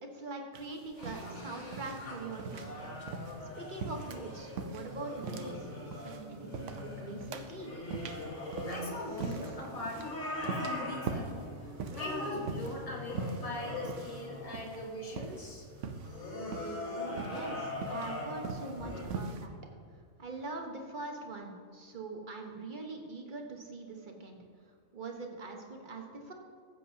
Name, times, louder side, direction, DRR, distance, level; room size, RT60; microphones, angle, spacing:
voice 1, 0.0-5.7 6.0-7.7 16.9-19.6 20.2-26.3, right 3 dB, 35° right, 2 dB, 1.2 m, -43 dB
sound 1, 0.5-19.4, right 4 dB, 60° right, 1.0 m, -42 dB
sound 2, 1.0-19.0, left 2 dB, 55° left, 2.0 m, -41 dB
voice 2, 8.6-15.6 18.8-19.0, left 1 dB, 25° left, -2 dB, 1.6 m, -42 dB
15.0 x 7.7 x 2.8 m, 2.2 s
omnidirectional pair, 1.5 m